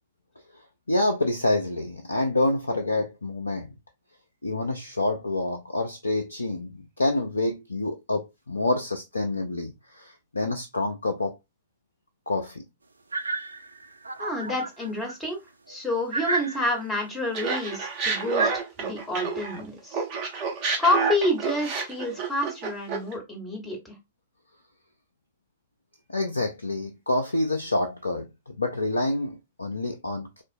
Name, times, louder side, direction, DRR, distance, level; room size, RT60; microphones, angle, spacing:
voice 1, 0.9-3.7 4.4-11.4 12.3-12.6 26.1-30.4, left 2 dB, 80° left, 0.4 m, -27 dB
sound 1, 13.1-15.2 15.7-15.8 16.1-17.0 18.4-18.6, right 3 dB, 80° right, 0.3 m, -31 dB
voice 2, 14.2-15.4 15.7-18.5 18.8-20.0 20.8-23.9, left 1 dB, 10° left, 1.3 m, -28 dB
Laughter, 17.3-19.6 19.9-23.1, right 5 dB, 40° right, 1.1 m, -29 dB
3.5 x 2.4 x 2.5 m
figure-of-eight pair, 105°, 0 cm